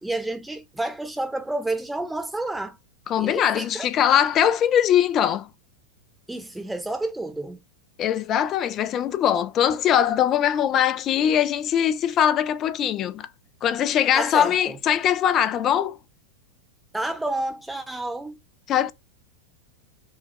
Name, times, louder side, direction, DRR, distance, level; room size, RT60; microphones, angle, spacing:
voice 1, 0.0-2.8 3.2-3.9 6.3-7.6 14.1-14.8 16.9-18.3, right 2 dB, 5° right, 0.9 m, -30 dB
voice 2, 3.1-5.5 8.0-13.3 13.6-16.0 18.7-18.9, left 10 dB, 30° left, 0.5 m, -21 dB
5.4 x 2.3 x 3.1 m
figure-of-eight pair, 90°, 0 cm